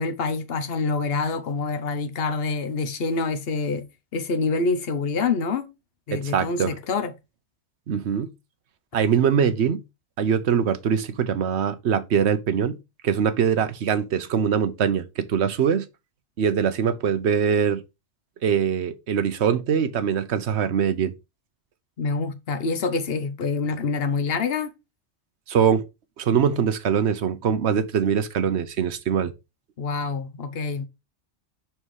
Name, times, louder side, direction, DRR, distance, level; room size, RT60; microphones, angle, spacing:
voice 1, 0.0-3.8 4.1-5.7 6.1-7.1 22.0-24.7 29.8-30.9, left 4 dB, 60° left, 1.1 m, -26 dB
voice 2, 6.1-6.7 7.9-8.3 8.9-9.8 10.2-12.8 13.0-15.9 16.4-17.8 18.4-21.1 25.5-25.8 26.2-29.3, right 7 dB, 70° right, 1.1 m, -22 dB
5.5 x 4.4 x 4.8 m
omnidirectional pair, 1.2 m